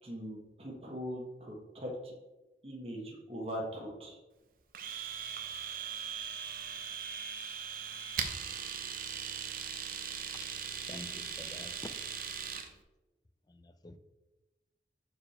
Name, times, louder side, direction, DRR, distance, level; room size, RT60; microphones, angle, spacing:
voice 1, 0.0-2.1 2.6-4.2, equal, 35° right, -2 dB, 1.3 m, -41 dB
Domestic sounds home sounds, 4.7-12.7, right 7 dB, 50° right, 0.7 m, -39 dB
voice 2, 10.9-11.9 12.3-12.4 13.5-14.0, left 1 dB, 25° left, 11 dB, 0.4 m, -48 dB
6.7 x 4.8 x 4.2 m, 1.1 s
head